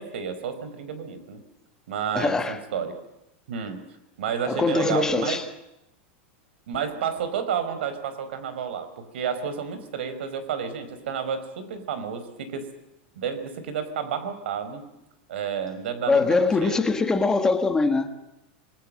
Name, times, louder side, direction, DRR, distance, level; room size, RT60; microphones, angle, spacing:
voice 1, 0.0-1.4 1.9-2.9 3.5-3.8 4.2-5.4 6.7-12.7 13.1-14.9 15.3-16.8, right 7 dB, 80° right, 4.9 m, -31 dB
voice 2, 2.1-2.6 4.4-5.5 16.1-18.1, left 3 dB, 10° left, 1.4 m, -22 dB
26.0 x 20.5 x 7.7 m
supercardioid pair, 160°, 6 cm